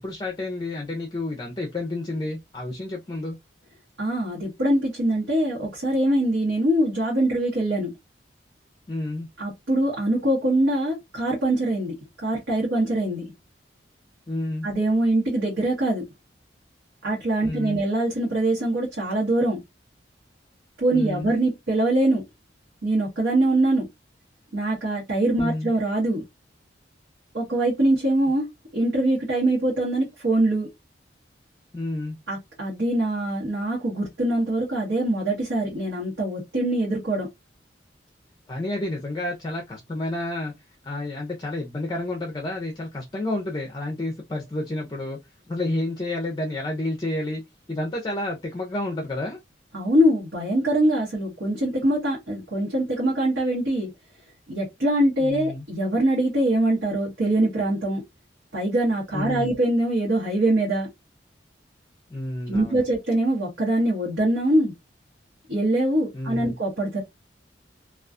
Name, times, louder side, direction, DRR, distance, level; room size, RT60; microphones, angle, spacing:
voice 1, 0.0-3.4 8.9-9.3 14.3-14.7 17.4-17.8 20.9-21.3 25.4-25.7 31.7-32.2 38.5-40.5 40.8-45.2 45.5-47.4 47.7-49.4 55.2-55.6 59.1-59.5 62.1-62.8 66.1-66.5, left 2 dB, 25° left, 0.4 m, -30 dB
voice 2, 4.0-7.9 9.4-11.9 12.2-13.2 14.6-16.0 17.0-19.6 20.8-22.2 22.8-23.9 24.5-26.2 27.3-28.5 28.7-30.7 32.3-37.3 49.7-53.9 54.5-58.0 58.5-60.9 62.5-64.7 65.5-67.0, right 1 dB, 85° right, 1.0 m, -23 dB
2.3 x 2.3 x 2.4 m
head